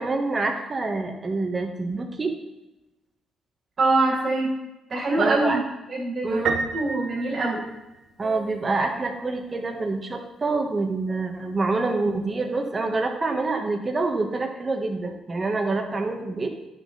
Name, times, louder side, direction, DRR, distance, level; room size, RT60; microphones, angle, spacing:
voice 1, 0.0-2.3 5.2-5.6 6.2-6.7 8.2-16.5, right 3 dB, 30° right, 3 dB, 1.6 m, -26 dB
voice 2, 3.8-4.5 4.9-5.6 5.9-6.4 6.7-7.6, right 2 dB, 45° right, -3 dB, 2.7 m, -23 dB
Piano, 6.5-8.3, right 5 dB, 75° right, 0.9 m, -30 dB
11.0 x 6.6 x 4.1 m, 1.0 s
cardioid pair, 90°, 0 cm